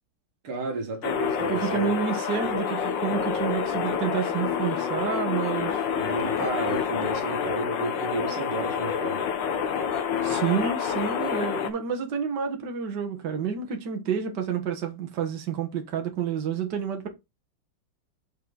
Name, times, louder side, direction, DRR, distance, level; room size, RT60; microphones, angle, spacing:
voice 1, 0.4-2.0 6.0-9.2, right 2 dB, 75° right, 2.7 m, -33 dB
sound 1, 1.0-11.7, left 7 dB, 60° left, 1.6 m, -28 dB
voice 2, 1.4-5.9 10.2-17.1, right 7 dB, 55° right, 2.0 m, -29 dB
6.5 x 5.5 x 4.1 m
omnidirectional pair, 2.4 m